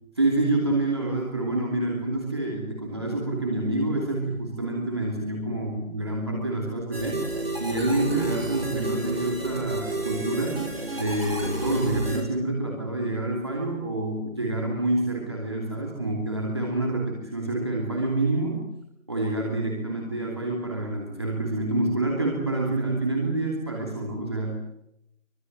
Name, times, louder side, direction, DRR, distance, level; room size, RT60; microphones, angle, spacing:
voice 1, 0.0-10.7 10.9-18.7 19.1-24.6, right 2 dB, 20° right, -1 dB, 2.8 m, -27 dB
sound 1, 6.9-12.2, right 2 dB, 45° right, 6.3 m, -31 dB
24.5 x 22.5 x 8.0 m, 0.79 s
figure-of-eight pair, 175°, 41 cm